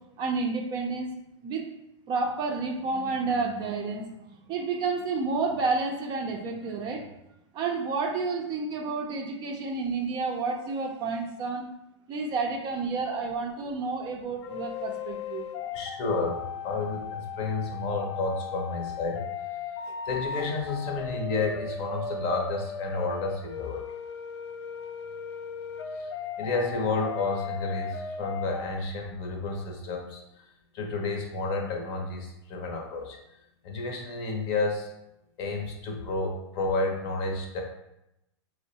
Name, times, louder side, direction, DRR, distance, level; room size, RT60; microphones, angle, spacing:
voice 1, 0.2-1.1 1.4-1.6 2.1-7.0 7.5-11.7 12.1-15.4, right 4 dB, 30° right, 2 dB, 0.5 m, -30 dB
sound 1, 14.4-28.8, left 6 dB, 70° left, 0.4 m, -37 dB
voice 2, 15.7-19.2 20.1-23.8 26.0-26.1 26.4-30.2 30.7-33.2 33.6-34.9 35.4-37.6, left 3 dB, 40° left, 2 dB, 0.7 m, -31 dB
4.4 x 2.1 x 2.8 m, 0.87 s
hypercardioid pair, 115°, 15 cm